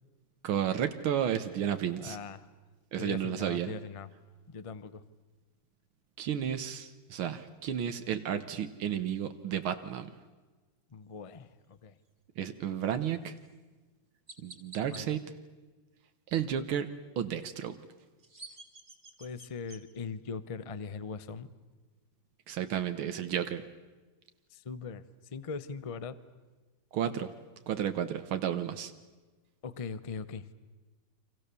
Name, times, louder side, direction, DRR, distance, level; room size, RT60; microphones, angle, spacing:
voice 1, 0.4-2.2 2.9-3.7 6.2-10.1 12.4-13.4 14.4-15.3 16.3-16.9 17.2-17.8 22.5-23.6 26.9-27.3 27.7-28.9, right 9 dB, 85° right, 9 dB, 1.9 m, -32 dB
voice 2, 2.0-2.5 3.0-4.1 4.5-5.0 10.9-12.0 14.9-15.2 19.2-21.5 24.5-25.0 25.3-26.2 29.6-30.5, left 5 dB, 40° left, 15 dB, 0.4 m, -40 dB
Chirp tweet, 13.4-13.5 14.3-15.0 18.0-19.8, right 2 dB, 25° right, 2.7 m, -49 dB
29.5 x 25.5 x 6.9 m, 1.3 s
omnidirectional pair, 2.2 m